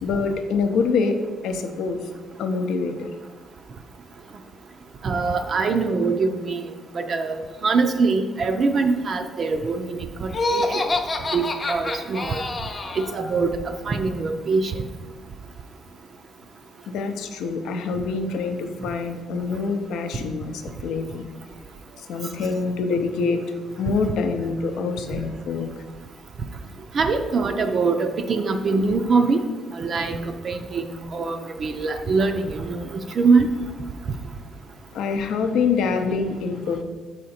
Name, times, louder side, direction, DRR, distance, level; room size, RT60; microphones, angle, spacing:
voice 1, 0.0-2.1 2.4-3.1 12.3-12.5 12.8-13.4 16.9-21.2 22.0-23.4 23.8-25.8 34.9-36.8, left 4 dB, 80° left, 6 dB, 0.6 m, -26 dB
voice 2, 5.0-6.6 6.9-10.9 11.3-12.4 13.0-13.5 13.8-14.8 25.1-25.2 26.9-29.4 29.7-30.2 30.4-33.5, right 4 dB, 35° right, 6 dB, 0.4 m, -23 dB
Laughter, 10.3-13.1, left 2 dB, 20° left, 0.5 m, -26 dB
7.6 x 4.9 x 4.2 m, 1.4 s
cardioid pair, 170°, 0 cm